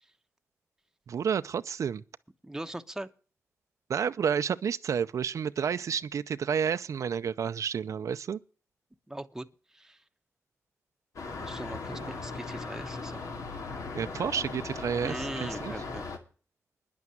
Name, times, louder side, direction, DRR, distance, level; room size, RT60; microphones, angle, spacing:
voice 1, 1.1-2.0 3.9-8.4 12.0-12.1 14.0-15.7, right 7 dB, 75° right, 0.6 m, -30 dB
voice 2, 2.4-3.1 9.1-9.5 9.7-10.0 11.2-13.4 15.0-16.0, right 1 dB, 10° right, 0.9 m, -40 dB
sound 1, 11.2-16.2, left 4 dB, 80° left, 2.4 m, -38 dB
10.5 x 8.4 x 7.7 m
wide cardioid pair, 125°, 5 cm